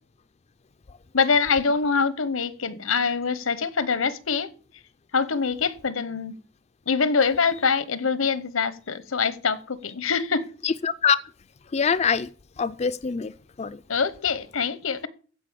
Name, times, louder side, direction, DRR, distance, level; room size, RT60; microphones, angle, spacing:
voice 1, 1.1-4.5 5.1-6.4 6.9-10.5 13.9-15.1, left 5 dB, 90° left, 1.0 m, -24 dB
voice 2, 10.6-11.2 11.7-12.3 12.6-13.3 13.6-13.8, left 6 dB, 35° left, 0.4 m, -23 dB
15.0 x 5.3 x 6.9 m
head